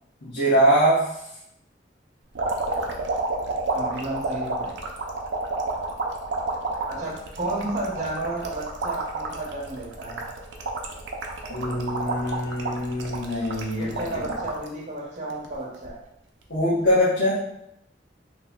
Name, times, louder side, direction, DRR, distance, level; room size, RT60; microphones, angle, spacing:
voice 1, 0.2-1.1 11.5-13.9 16.5-17.5, equal, 90° left, -11 dB, 1.0 m, -22 dB
sound 1, 2.3-14.7 15.2-15.9 16.9-17.1, right 3 dB, 85° right, 0.5 m, -30 dB
voice 2, 3.7-4.8 6.8-10.2 13.8-16.0, right 2 dB, 40° right, -5 dB, 0.9 m, -32 dB
3.0 x 2.1 x 3.6 m, 0.77 s
head